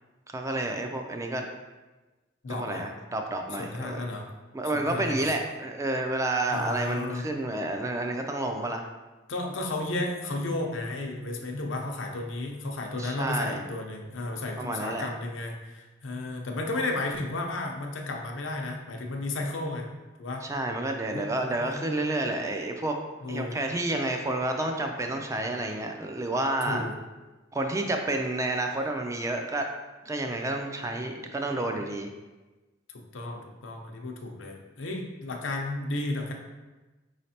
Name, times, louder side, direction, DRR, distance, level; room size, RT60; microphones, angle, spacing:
voice 1, 0.3-1.4 2.5-4.0 4.5-8.9 13.0-13.6 14.6-15.1 20.5-22.9 23.3-26.9 27.5-29.7 30.1-32.1, right 2 dB, 15° right, 4 dB, 0.3 m, -30 dB
voice 2, 2.4-2.9 3.6-4.3 4.7-5.4 6.5-7.2 9.3-19.9 20.2-20.5 21.1-21.8 23.2-23.5 26.7-27.0 32.9-36.3, left 2 dB, 80° left, 2 dB, 0.6 m, -33 dB
4.9 x 3.2 x 2.8 m, 1.2 s
head